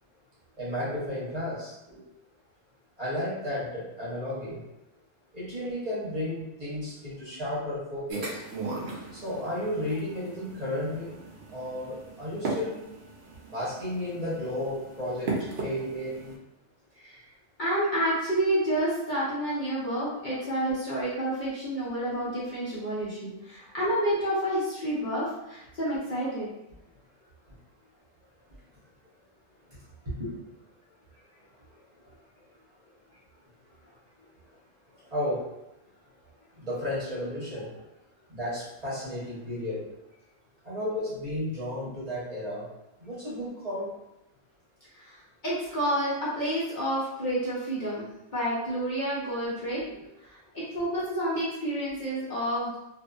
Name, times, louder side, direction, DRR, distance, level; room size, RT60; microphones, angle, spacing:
voice 1, 0.6-1.7 3.0-4.7 5.3-8.4 9.1-11.1 11.5-12.8 13.5-16.3 30.2-30.3 35.1-35.5 36.6-37.7 38.3-39.9 40.6-42.7 43.0-44.0, left 1 dB, 35° right, -9 dB, 0.9 m, -33 dB
sound 1, 8.1-16.3, right 3 dB, 65° right, 0.8 m, -38 dB
voice 2, 17.6-26.5 45.0-52.8, right 1 dB, 45° left, -9 dB, 0.8 m, -29 dB
2.5 x 2.5 x 2.3 m, 0.90 s
omnidirectional pair, 1.2 m